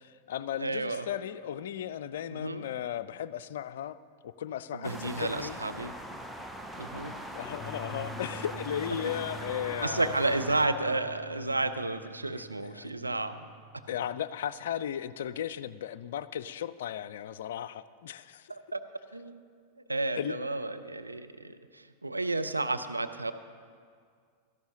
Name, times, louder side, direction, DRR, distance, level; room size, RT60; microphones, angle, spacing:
voice 1, 0.0-4.0 4.2-5.6 7.0-10.1 11.6-11.7 12.3-12.4 12.7-12.9 13.9-18.5 20.1-20.4, left 10 dB, 60° left, 0.3 m, -36 dB
voice 2, 0.6-1.0 2.3-2.6 4.7-5.9 6.8-7.1 9.8-13.5 18.5-18.8 19.1-19.4 19.8-23.3, right 2 dB, 85° right, 0.5 m, -32 dB
sound 1, 4.8-10.7, equal, ahead, 0.7 m, -41 dB
sound 2, 7.6-14.2, right 2 dB, 20° left, 1.8 m, -47 dB
16.5 x 13.5 x 2.9 m
figure-of-eight pair, 90°, 0 cm